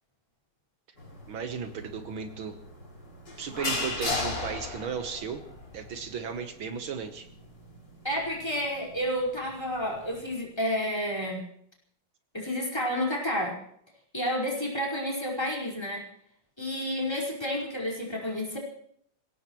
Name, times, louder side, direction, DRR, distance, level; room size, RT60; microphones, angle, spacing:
sound 1, 1.0-10.4, left 2 dB, 55° left, 5.0 m, -37 dB
voice 1, 1.3-2.6 3.4-5.4 5.7-7.3, right 6 dB, 75° right, 7 dB, 2.0 m, -35 dB
voice 2, 8.0-11.4 12.3-13.5 14.1-16.0 16.6-18.6, equal, 10° left, -3 dB, 4.9 m, -30 dB
27.0 x 17.0 x 3.1 m, 0.67 s
omnidirectional pair, 2.3 m